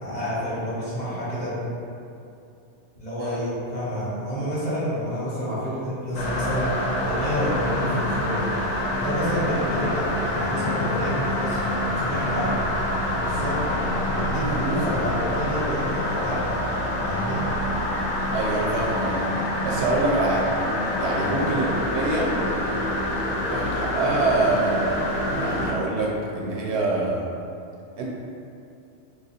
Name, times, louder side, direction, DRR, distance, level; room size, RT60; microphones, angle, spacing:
voice 1, 0.0-1.6 3.0-6.7 7.0-8.4 8.9-11.6 12.0-12.5 13.2-13.6 14.1-16.4 17.0-17.4 21.1-21.4, equal, 40° left, -10 dB, 1.0 m, -29 dB
sound 1, 6.1-25.7, left 1 dB, 85° left, 1.0 m, -26 dB
voice 2, 18.3-19.2 19.6-20.5 21.0-22.4 23.5-25.1 25.4-27.3 28.0-28.1, right 2 dB, 75° right, -3 dB, 0.9 m, -25 dB
2.9 x 2.3 x 4.2 m, 2.5 s
omnidirectional pair, 1.2 m